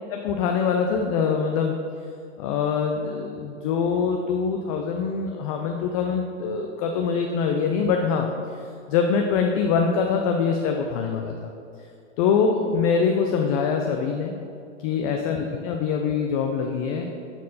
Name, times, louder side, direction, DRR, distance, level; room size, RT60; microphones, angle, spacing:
voice 1, 0.1-1.8 2.4-8.3 8.9-11.5 12.2-14.3 14.8-17.1, left 6 dB, 30° left, 3 dB, 0.4 m, -24 dB
8.2 x 4.4 x 4.1 m, 2.5 s
hypercardioid pair, 120°, 38 cm